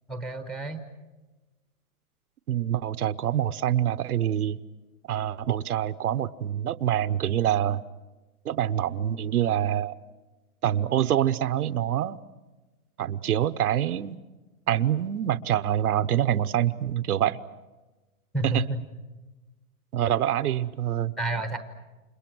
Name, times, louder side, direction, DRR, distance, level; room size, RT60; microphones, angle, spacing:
voice 1, 0.1-0.8 18.3-18.8 21.2-21.6, right 2 dB, ahead, 7 dB, 0.9 m, -29 dB
voice 2, 2.5-4.6 5.1-7.8 8.4-9.9 10.6-12.2 13.0-14.2 14.7-17.4 18.4-18.7 19.9-21.1, right 11 dB, 80° right, 11 dB, 1.1 m, -25 dB
30.0 x 26.5 x 6.2 m, 1.2 s
hypercardioid pair, 155°, 44 cm